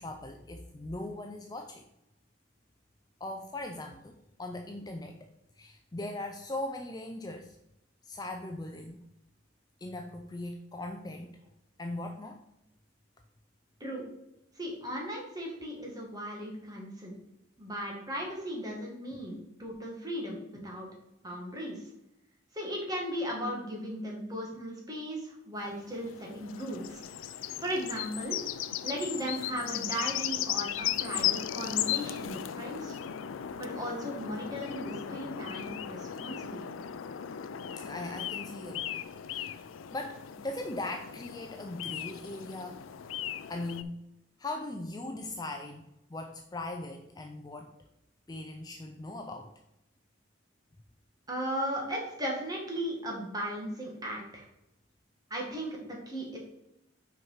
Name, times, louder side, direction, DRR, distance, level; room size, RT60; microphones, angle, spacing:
voice 1, 0.0-1.8 3.2-7.6 8.0-9.1 9.8-11.4 11.8-12.4 19.1-19.2 20.5-20.7 37.7-39.6 39.9-42.8 43.5-44.0 44.4-47.7 48.3-49.5, left 2 dB, 20° left, 4 dB, 0.4 m, -40 dB
voice 2, 14.6-17.2 17.6-20.4 20.6-20.9 21.2-21.8 22.5-27.0 27.6-28.4 28.8-32.9 33.6-36.7 51.3-54.4 55.3-56.4, equal, 20° right, -1 dB, 1.8 m, -36 dB
sound 1, 25.6-43.8, left 10 dB, 85° left, 0.4 m, -36 dB
5.9 x 4.6 x 5.6 m, 0.86 s
head